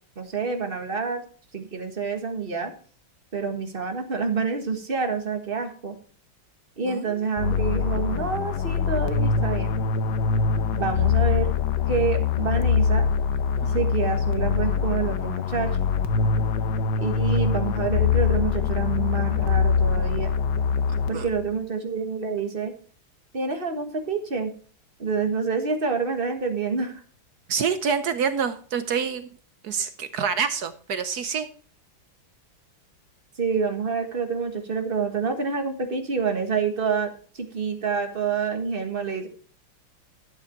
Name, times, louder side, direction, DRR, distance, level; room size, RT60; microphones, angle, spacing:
voice 1, 0.2-1.2 1.5-2.7 3.3-6.0 6.8-9.7 10.7-11.5 11.9-13.0 13.7-15.7 17.0-20.3 21.1-22.7 23.3-24.5 25.0-27.0 33.4-39.3, right 5 dB, 30° right, 6 dB, 1.6 m, -27 dB
voice 2, 6.8-7.2 13.6-13.8 21.1-21.3 27.5-29.3 29.6-31.5, right 6 dB, 65° right, 11 dB, 1.2 m, -27 dB
sound 1, 7.4-21.5, left 6 dB, 70° left, 1.5 m, -23 dB
11.5 x 8.4 x 4.4 m, 0.42 s
omnidirectional pair, 2.1 m